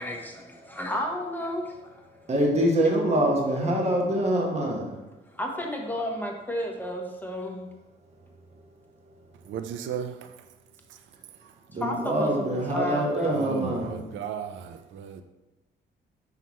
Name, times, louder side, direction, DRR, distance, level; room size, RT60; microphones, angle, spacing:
voice 1, 0.0-2.0 5.3-7.7 11.8-12.3 12.7-13.4, left 1 dB, 10° left, 0 dB, 1.0 m, -32 dB
voice 2, 2.1-5.0 8.1-8.2 9.0-9.6 11.7-14.3, right 1 dB, 35° right, -1 dB, 1.4 m, -25 dB
voice 3, 9.5-10.2 13.3-15.2, right 8 dB, 75° right, 9 dB, 0.5 m, -34 dB
5.7 x 5.6 x 3.1 m, 1.0 s
cardioid pair, 90°, 20 cm